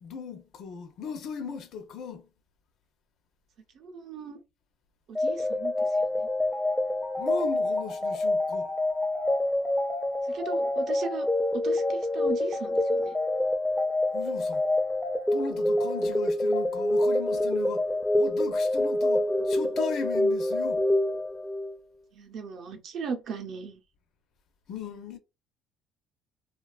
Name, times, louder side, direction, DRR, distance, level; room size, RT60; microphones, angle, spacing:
voice 1, 0.0-2.2 7.2-8.7 14.1-14.6 15.3-17.9 18.2-20.8 24.7-25.2, left 6 dB, 60° left, 0.5 m, -37 dB
voice 2, 3.8-4.4 5.2-6.3 10.3-11.3 11.5-13.1 22.1-23.8, right 5 dB, 55° right, 0.6 m, -38 dB
sound 1, 5.2-21.8, left 1 dB, 5° left, 0.4 m, -26 dB
2.4 x 2.3 x 2.3 m
cardioid pair, 115°, 0 cm